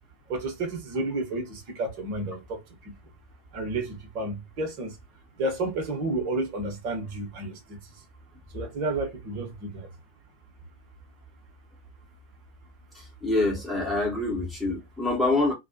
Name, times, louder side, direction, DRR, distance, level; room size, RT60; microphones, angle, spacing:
voice 1, 0.3-2.9 3.5-5.0 5.4-7.8 8.5-9.9, right 2 dB, 45° right, 1.1 m, -31 dB
voice 2, 12.9-15.5, left 2 dB, ahead, 1.2 m, -26 dB
2.6 x 2.3 x 2.7 m
figure-of-eight pair, 90°, 0 cm